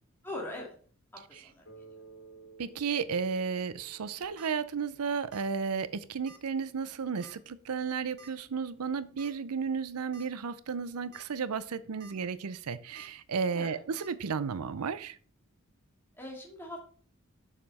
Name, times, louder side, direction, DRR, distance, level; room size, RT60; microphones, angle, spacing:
voice 1, 0.2-0.7 1.1-1.9 13.5-13.8 16.2-16.8, left 1 dB, 10° left, 2.4 m, -41 dB
Bass guitar, 1.7-5.7, right 4 dB, 65° left, 3.6 m, -55 dB
voice 2, 2.6-15.2, right 6 dB, 90° right, 0.6 m, -33 dB
sound 1, 4.1-4.5 5.3-5.6 5.8-5.9 6.3-6.4 7.2-7.5 8.2-8.3 9.2-9.3 9.8-9.9 10.1-10.3 10.9-11.2 11.7-12.1 12.9-13.1 14.0-14.1, right 3 dB, 45° right, 0.9 m, -52 dB
7.3 x 6.7 x 4.2 m
head